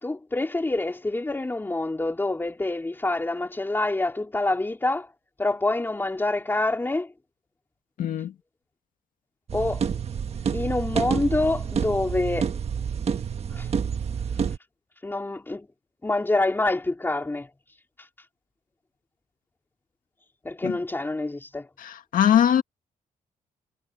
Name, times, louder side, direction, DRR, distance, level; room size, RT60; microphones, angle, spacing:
voice 1, 0.0-5.1 5.4-7.1 9.5-9.9 10.5-12.5 13.5-13.7 15.0-15.7 16.0-17.5 18.0-18.1 20.4-21.7, left 2 dB, 15° left, 3.6 m, -26 dB
voice 2, 8.0-8.3 20.6-20.7 21.8-22.6, left 9 dB, 80° left, 2.0 m, -21 dB
sound 1, 9.5-14.6, right 7 dB, 50° right, 1.5 m, -28 dB
cardioid pair, 115°, 14 cm